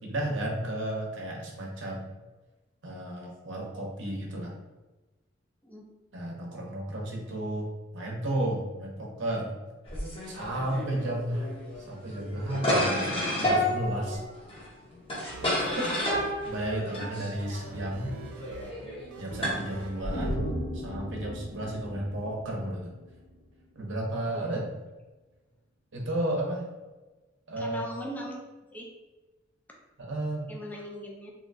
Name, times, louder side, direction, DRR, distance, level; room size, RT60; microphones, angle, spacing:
voice 1, 0.0-2.1 2.8-4.5 6.1-9.5 10.3-11.5 11.9-14.2 15.4-15.9 16.4-18.2 19.2-20.5 20.7-22.9 23.8-24.6 25.9-26.7 27.5-27.8 30.0-30.5, right 1 dB, 65° right, -2 dB, 0.8 m, -33 dB
sound 1, 9.9-20.2, equal, 30° left, 0.8 m, -31 dB
sound 2, 15.3-20.4, right 3 dB, 85° right, 0.3 m, -45 dB
sound 3, 20.0-23.4 23.7-23.8, equal, 80° left, 1.0 m, -36 dB
voice 2, 27.6-28.4 28.7-28.9 30.5-31.3, equal, 10° left, -1 dB, 0.5 m, -39 dB
3.1 x 2.7 x 2.6 m, 1.2 s
head